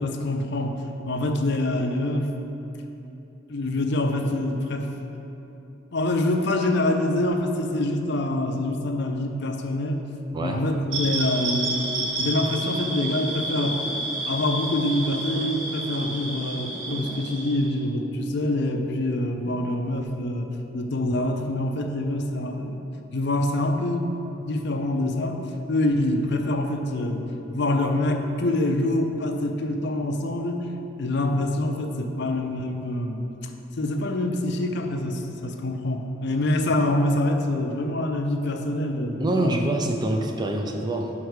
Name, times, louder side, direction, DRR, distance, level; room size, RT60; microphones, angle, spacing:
voice 1, 0.0-2.3 3.5-4.9 5.9-10.0 10.4-13.8 14.3-22.8 23.1-24.1 24.4-25.4 25.7-30.7 31.0-39.6, left 1 dB, 55° left, 4 dB, 0.5 m, -25 dB
sound 1, 10.9-17.7, right 1 dB, 75° right, 1.4 m, -30 dB
voice 2, 39.2-41.1, right 1 dB, 20° right, 3 dB, 0.5 m, -25 dB
5.8 x 4.7 x 6.3 m, 3.0 s
head